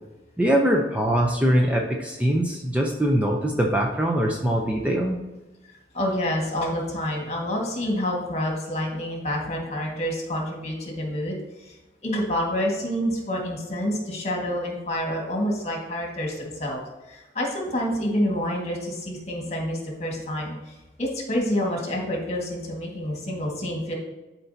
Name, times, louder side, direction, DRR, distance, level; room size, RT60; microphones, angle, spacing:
voice 1, 0.4-5.2, equal, 10° right, 0 dB, 0.6 m, -22 dB
voice 2, 5.9-11.8 12.0-16.8 17.1-23.9, equal, 40° left, -1 dB, 1.7 m, -28 dB
11.5 x 4.5 x 2.8 m, 1.1 s
head